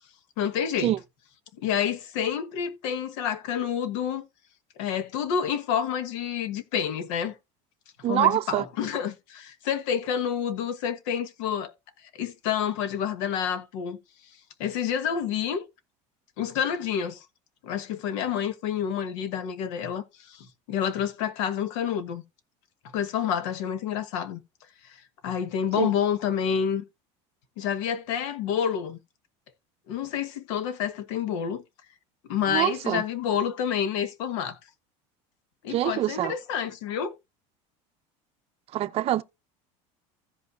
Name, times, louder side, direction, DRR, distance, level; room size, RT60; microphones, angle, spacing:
voice 1, 0.4-0.9 1.6-4.3 4.8-7.3 8.1-11.7 12.1-14.0 14.6-15.7 16.4-17.2 17.6-22.2 22.9-24.4 24.8-26.8 27.6-29.0 29.9-31.6 32.3-34.6 35.6-37.2, left 8 dB, 80° left, 1.2 m, -28 dB
voice 2, 8.0-8.7 25.8-25.9 32.5-33.0 35.7-36.3 38.7-39.2, right 13 dB, 40° right, 0.6 m, -25 dB
15.5 x 5.4 x 2.5 m
cardioid pair, 140°, 16 cm